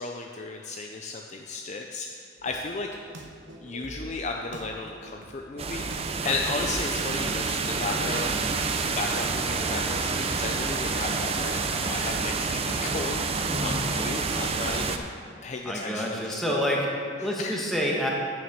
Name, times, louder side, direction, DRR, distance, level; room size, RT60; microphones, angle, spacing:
voice 1, 0.0-2.9 3.6-8.5 8.8-15.1 15.4-16.4 17.2-17.7, left 3 dB, 35° left, 2 dB, 0.4 m, -34 dB
sound 1, 2.4-8.8, right 1 dB, 65° right, 0.9 m, -45 dB
sound 2, 5.6-15.0, right 4 dB, 30° right, 0.4 m, -28 dB
voice 2, 13.5-13.8 15.6-18.1, equal, ahead, -3 dB, 1.2 m, -28 dB
9.4 x 7.1 x 5.2 m, 2.3 s
head